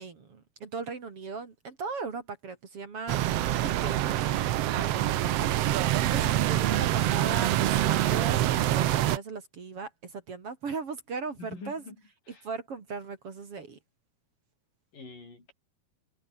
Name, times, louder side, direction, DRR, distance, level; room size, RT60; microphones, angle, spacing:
voice 1, 0.0-3.3 3.6-11.8 12.4-13.8, right 4 dB, 45° right, 3.2 m, -38 dB
sound 1, 3.1-9.2, right 13 dB, 75° right, 1.5 m, -26 dB
voice 2, 5.9-6.4 11.4-12.0 12.3-12.5 14.9-15.5, left 3 dB, 75° left, 9.8 m, -46 dB
omnidirectional pair, 3.9 m